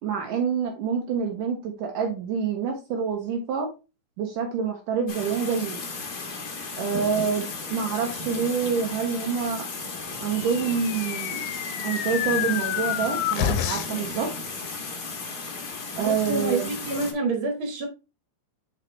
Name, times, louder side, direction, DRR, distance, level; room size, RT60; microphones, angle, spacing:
voice 1, 0.0-3.7 4.2-5.8 6.8-9.6 10.2-11.4 11.8-14.3 16.0-16.7, right 6 dB, 75° right, 2.6 m, -27 dB
sound 1, 5.1-17.1, left 3 dB, 50° left, 1.1 m, -35 dB
sound 2, 10.4-14.1, left 11 dB, 90° left, 2.4 m, -29 dB
voice 2, 16.0-17.9, right 3 dB, 40° right, 2.5 m, -27 dB
6.4 x 5.1 x 3.3 m
omnidirectional pair, 4.0 m